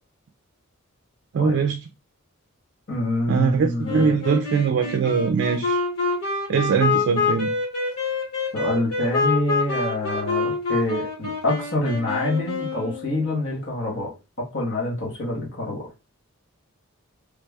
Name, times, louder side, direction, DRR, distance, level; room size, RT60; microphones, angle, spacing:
voice 1, 1.3-1.8 3.3-5.8 6.5-7.5, right 6 dB, 60° right, 0.3 m, -22 dB
voice 2, 2.9-4.2 8.5-14.1 14.5-15.9, left 1 dB, 60° left, 1.1 m, -26 dB
Wind instrument woodwind instrument, 3.8-13.3, left 4 dB, 85° left, 1.6 m, -26 dB
3.3 x 2.2 x 3.3 m
head